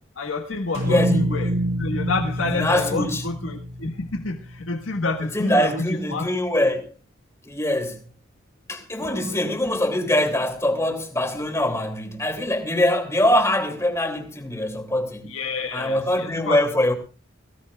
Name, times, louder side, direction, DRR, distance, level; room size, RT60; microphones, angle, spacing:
voice 1, 0.0-1.5 1.8-6.3 9.0-9.5 15.2-16.7, left 3 dB, 80° left, 1.7 m, -28 dB
sound 1, 0.7-5.0, equal, 80° right, 6.9 m, -27 dB
voice 2, 0.9-1.5 2.5-3.2 5.3-6.9 7.5-8.0 8.7-15.3 15.7-16.9, left 1 dB, 15° left, 2.8 m, -23 dB
21.5 x 17.0 x 2.4 m
head